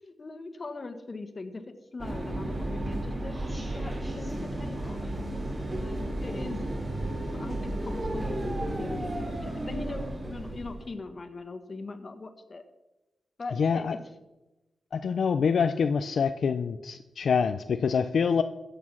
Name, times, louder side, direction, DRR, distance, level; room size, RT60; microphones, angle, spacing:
voice 1, 0.0-3.4 3.7-5.2 5.8-6.6 7.3-12.6 13.4-13.9, left 3 dB, 40° left, 8 dB, 1.5 m, -40 dB
sound 1, 2.0-10.9, right 1 dB, 30° right, 3.7 m, -33 dB
voice 2, 13.6-14.0 14.9-18.4, left 6 dB, 70° left, 9 dB, 0.5 m, -26 dB
14.5 x 8.4 x 6.1 m, 1.0 s
cardioid pair, 85°, 0 cm